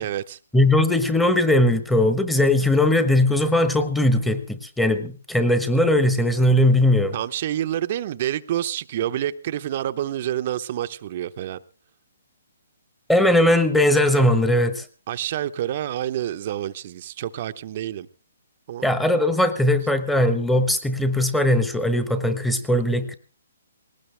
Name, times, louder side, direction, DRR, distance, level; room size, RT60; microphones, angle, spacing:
voice 1, 0.0-0.4 7.1-11.6 15.1-18.1 18.7-18.9, right 11 dB, 45° right, 0.9 m, -28 dB
voice 2, 0.5-7.1 13.1-14.8 18.8-23.1, left 1 dB, 5° left, 1.2 m, -19 dB
19.5 x 18.5 x 3.4 m
hypercardioid pair, 155°, 0 cm